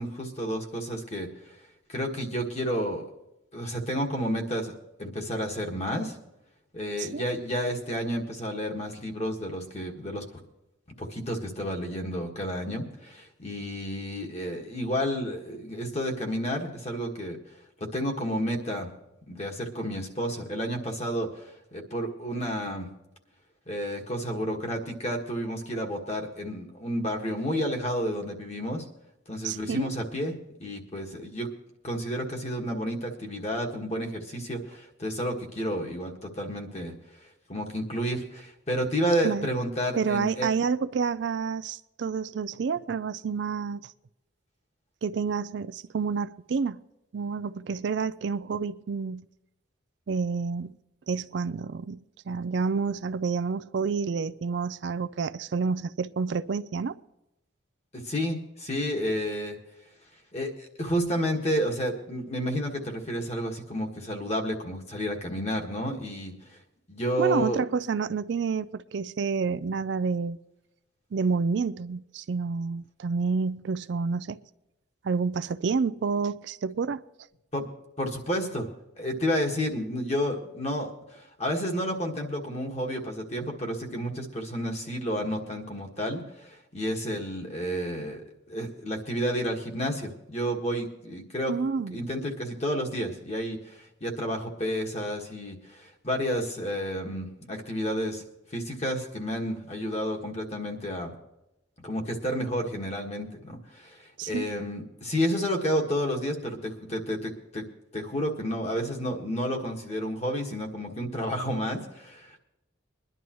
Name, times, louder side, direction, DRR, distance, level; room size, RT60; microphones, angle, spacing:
voice 1, 0.0-1.6 1.9-3.1 3.5-6.2 6.7-10.2 11.0-17.4 17.8-18.9 19.3-22.9 23.7-28.8 29.3-31.5 31.8-36.9 37.5-40.5 57.9-59.6 60.3-66.3 66.9-67.6 77.5-77.7 78.0-78.7 79.0-91.5 91.9-98.2 98.5-101.1 101.8-107.6 107.9-112.4, equal, 35° left, 1.7 m, -31 dB
voice 2, 29.4-29.9 39.2-39.5 40.0-43.9 45.0-46.8 47.1-49.3 50.1-50.8 51.1-57.0 67.2-70.4 71.1-74.4 75.0-77.0 91.5-92.0 104.2-104.5, right 5 dB, 60° right, 0.4 m, -29 dB
21.5 x 11.0 x 3.1 m
head